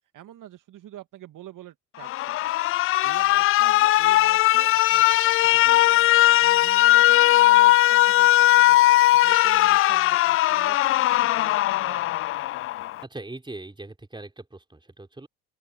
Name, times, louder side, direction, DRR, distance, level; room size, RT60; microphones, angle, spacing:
voice 1, 0.1-2.5 3.0-12.6, right 12 dB, 45° right, 2.4 m, -46 dB
Alarm, 2.0-13.0, left 16 dB, 35° left, 0.4 m, -19 dB
voice 2, 13.0-15.3, right 2 dB, 10° right, 4.5 m, -40 dB
open air
figure-of-eight pair, 55°, 42 cm